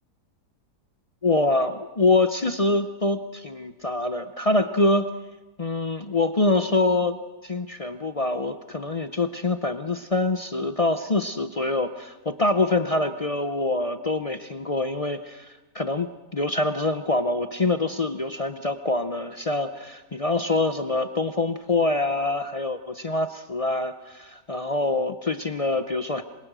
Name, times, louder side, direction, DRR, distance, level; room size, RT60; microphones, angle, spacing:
voice 1, 1.2-5.1 5.6-7.2 7.4-26.2, left 2 dB, 45° left, 10 dB, 0.4 m, -25 dB
27.0 x 23.0 x 6.2 m, 1.1 s
omnidirectional pair, 1.8 m